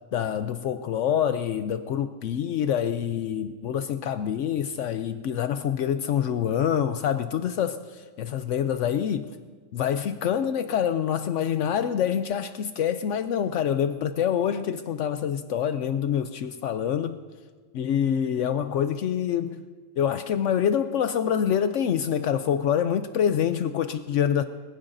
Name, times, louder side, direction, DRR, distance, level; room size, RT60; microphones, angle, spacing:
voice 1, 0.1-9.3 9.7-17.2 17.7-19.6 20.0-24.4, left 9 dB, 75° left, 10 dB, 0.9 m, -26 dB
23.5 x 16.0 x 2.6 m, 1.5 s
omnidirectional pair, 1.3 m